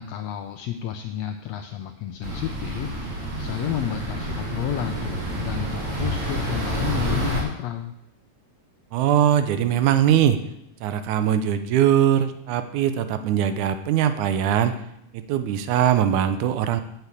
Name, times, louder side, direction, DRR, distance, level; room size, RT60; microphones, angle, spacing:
voice 1, 0.0-8.0, left 10 dB, 85° left, 7 dB, 1.5 m, -31 dB
sound 1, 2.2-7.4, right 1 dB, 45° right, 3.0 m, -29 dB
voice 2, 8.9-10.4 10.8-14.8 15.1-16.8, right 10 dB, 75° right, 10 dB, 2.0 m, -21 dB
8.2 x 6.8 x 8.2 m, 0.78 s
omnidirectional pair, 3.7 m